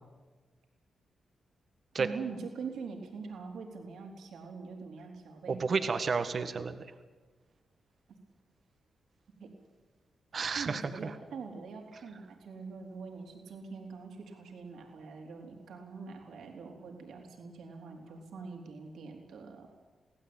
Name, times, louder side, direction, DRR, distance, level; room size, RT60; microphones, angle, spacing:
voice 1, 2.0-5.6 9.4-9.5 10.5-19.7, right 5 dB, 75° right, 2 dB, 4.0 m, -44 dB
voice 2, 5.5-6.8 10.3-11.1, right 5 dB, 55° right, 9 dB, 1.7 m, -31 dB
25.0 x 16.5 x 9.0 m, 1.3 s
supercardioid pair, 45°, 0 cm